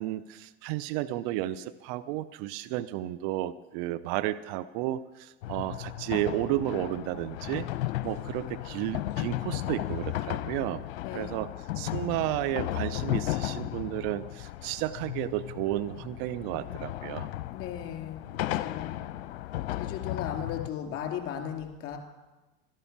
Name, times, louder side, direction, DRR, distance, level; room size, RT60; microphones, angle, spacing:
voice 1, 0.0-7.7 8.0-10.8 11.1-11.5 11.8-17.3, right 14 dB, 60° right, 14 dB, 0.7 m, -32 dB
sound 1, 5.4-20.7, left 14 dB, 70° left, 0.8 m, -35 dB
voice 2, 11.0-11.5 17.5-18.2 18.5-19.0 19.8-22.0, left 9 dB, 45° left, 4 dB, 3.0 m, -36 dB
12.5 x 12.0 x 8.5 m, 1.1 s
hypercardioid pair, 85°, 31 cm